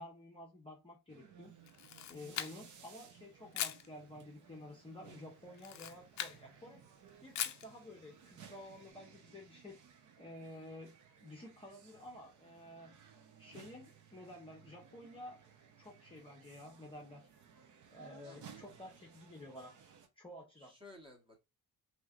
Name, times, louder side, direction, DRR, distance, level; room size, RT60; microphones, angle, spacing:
voice 1, 0.0-1.5 2.1-6.8 7.2-9.8 10.2-10.9 11.2-13.0 13.4-15.4 15.8-17.3 17.9-19.8 20.2-20.7, left 1 dB, 15° left, 0.7 m, -51 dB
sound 1, 1.1-20.1, right 7 dB, 50° right, 0.7 m, -59 dB
Camera, 1.7-2.8 3.5-3.9 5.5-6.4 7.3-7.7, left 11 dB, 50° left, 0.4 m, -40 dB
voice 2, 18.2-18.9 20.5-21.4, left 2 dB, 15° right, 1.0 m, -57 dB
3.1 x 2.8 x 2.3 m
cardioid pair, 125°, 38 cm